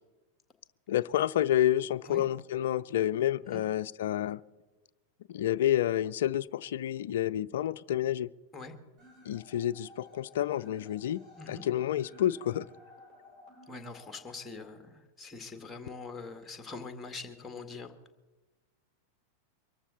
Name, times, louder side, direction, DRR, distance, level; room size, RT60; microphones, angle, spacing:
voice 1, 0.9-4.4 5.3-8.3 9.2-11.2 11.5-12.7, left 12 dB, 60° left, 19 dB, 0.4 m, -29 dB
sound 1, 9.0-15.0, left 2 dB, 25° right, 7.4 m, -56 dB
voice 2, 13.7-17.9, left 4 dB, 10° left, 7 dB, 2.0 m, -43 dB
23.5 x 14.5 x 4.1 m, 1.2 s
figure-of-eight pair, 90°, 0 cm